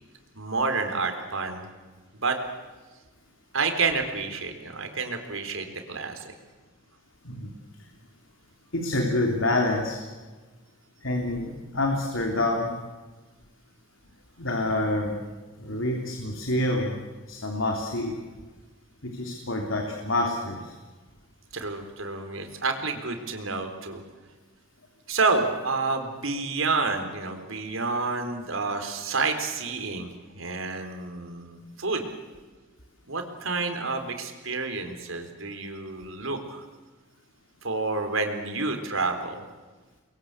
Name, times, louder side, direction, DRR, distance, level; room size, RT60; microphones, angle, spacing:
voice 1, 0.4-1.7 2.2-2.4 3.5-6.3 21.5-24.0 25.1-30.1 30.4-32.1 33.1-36.6 37.6-39.4, right 4 dB, 90° right, 6 dB, 3.9 m, -29 dB
voice 2, 8.7-10.0 11.0-12.7 14.4-15.1 15.6-16.9 17.3-18.1 19.0-20.7, left 1 dB, 70° left, 2 dB, 3.4 m, -27 dB
30.0 x 22.5 x 8.3 m, 1.3 s
head